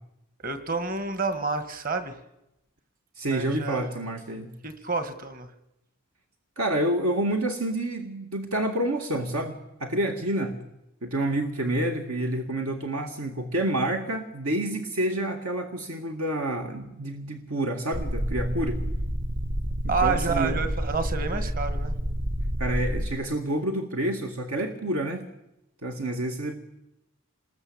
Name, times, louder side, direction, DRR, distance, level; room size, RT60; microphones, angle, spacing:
voice 1, 0.4-2.2 3.3-3.8 4.6-5.5 19.9-21.9, right 4 dB, 40° right, 10 dB, 1.9 m, -29 dB
voice 2, 3.2-4.5 6.6-10.6 11.0-18.8 19.8-20.6 22.6-25.3 25.8-26.6, right 1 dB, 80° right, 4 dB, 2.1 m, -28 dB
sound 1, 17.9-23.1, equal, 55° right, 1.2 m, -29 dB
27.0 x 21.0 x 8.8 m, 0.89 s
head